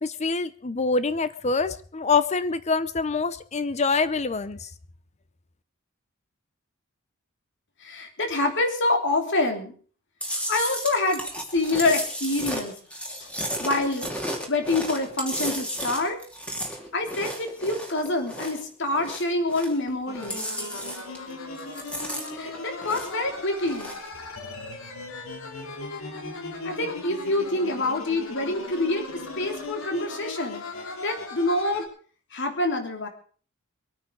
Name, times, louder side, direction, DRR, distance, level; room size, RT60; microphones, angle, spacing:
voice 1, 0.0-4.7, left 4 dB, 35° left, 14 dB, 0.7 m, -25 dB
voice 2, 7.8-9.7 10.3-11.2 11.5-12.7 13.2-13.3 13.6-14.1 14.5-16.2 16.9-20.4 22.3-24.0 26.6-31.9 32.3-33.1, left 2 dB, 60° left, 5 dB, 3.2 m, -26 dB
Chewing mastication, 10.2-18.7 18.9-19.9 20.1-21.3 21.6-23.3 23.6-24.1, equal, 5° left, 2.9 m, -33 dB
sound 1, 20.1-31.9, left 2 dB, 80° left, 3.2 m, -38 dB
22.5 x 9.4 x 5.2 m, 0.43 s
head